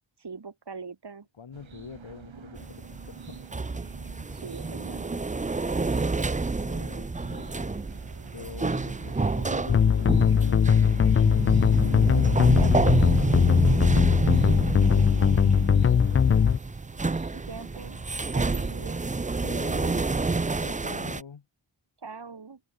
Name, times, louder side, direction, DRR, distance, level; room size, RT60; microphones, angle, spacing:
voice 1, 0.2-1.3 4.3-5.0 12.4-13.0 17.3-18.0 18.3-19.0 22.0-22.6, right 5 dB, 60° right, 4.6 m, -42 dB
voice 2, 1.4-3.5 6.6-7.8 8.3-11.1 11.8-14.7 15.3-16.5 19.4-20.2 20.6-21.4, left 6 dB, 90° left, 3.3 m, -44 dB
sound 1, 1.5-20.0, right 7 dB, 85° right, 1.9 m, -47 dB
sound 2, 2.6-21.2, right 3 dB, 15° right, 0.6 m, -28 dB
sound 3, 9.7-16.6, left 7 dB, 30° left, 0.4 m, -20 dB
wide cardioid pair, 95°, 45 cm